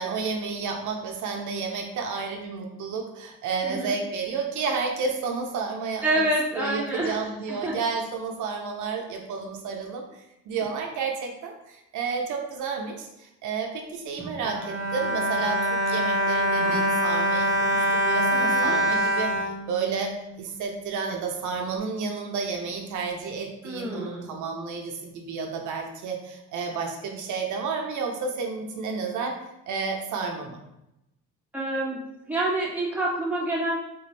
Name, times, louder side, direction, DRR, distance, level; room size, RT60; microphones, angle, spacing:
voice 1, 0.0-6.2 6.6-10.0 10.5-29.4 29.7-30.6, right 5 dB, 80° right, 2 dB, 0.6 m, -31 dB
voice 2, 6.0-7.2 7.6-7.7 18.3-18.8 23.6-24.3 31.5-32.0 32.3-33.8, right 1 dB, 5° right, -5 dB, 1.2 m, -27 dB
Bowed string instrument, 14.2-20.4 21.1-21.2 21.5-21.6, right 1 dB, 35° right, 1.2 m, -25 dB
3.7 x 2.5 x 3.2 m, 0.85 s
cardioid pair, 90°, 30 cm